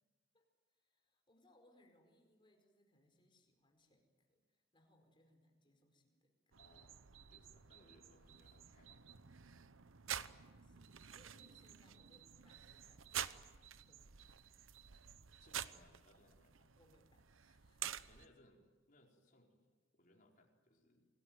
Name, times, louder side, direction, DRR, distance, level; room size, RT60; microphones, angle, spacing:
voice 1, 0.3-6.6 10.3-13.3 13.7-14.5 16.7-18.0, left 1 dB, 25° left, 4 dB, 4.8 m, -73 dB
voice 2, 6.5-7.0 7.3-9.1 15.4-16.7 18.1-19.5 19.9-21.1, left 1 dB, 40° left, 0 dB, 4.7 m, -68 dB
sound 1, 6.5-18.3, right 9 dB, 75° right, 0.9 m, -49 dB
28.0 x 20.0 x 9.4 m, 1.3 s
head